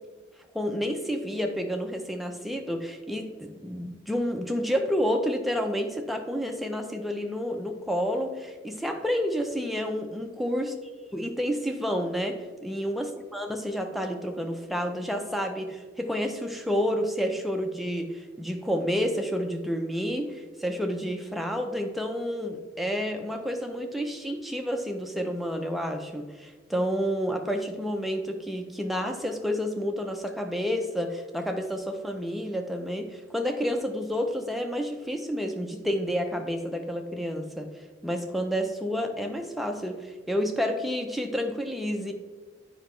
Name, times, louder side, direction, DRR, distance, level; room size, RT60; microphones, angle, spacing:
voice 1, 0.5-10.7 11.1-13.1 13.3-42.1, equal, ahead, 3 dB, 0.5 m, -30 dB
8.6 x 4.9 x 3.1 m, 1.4 s
head